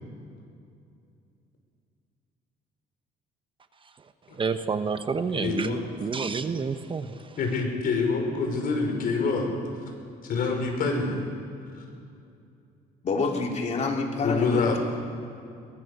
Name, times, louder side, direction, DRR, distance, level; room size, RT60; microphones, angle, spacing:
voice 1, 4.3-7.4, right 5 dB, 30° right, 9 dB, 1.0 m, -29 dB
voice 2, 5.3-5.8 7.4-9.5 10.3-11.2 11.8-11.9 14.2-14.8, left 4 dB, 60° left, 2 dB, 5.5 m, -26 dB
voice 3, 13.0-14.8, left 3 dB, 40° left, 1 dB, 3.3 m, -27 dB
22.0 x 20.5 x 6.8 m, 2.5 s
cardioid pair, 110°, 17 cm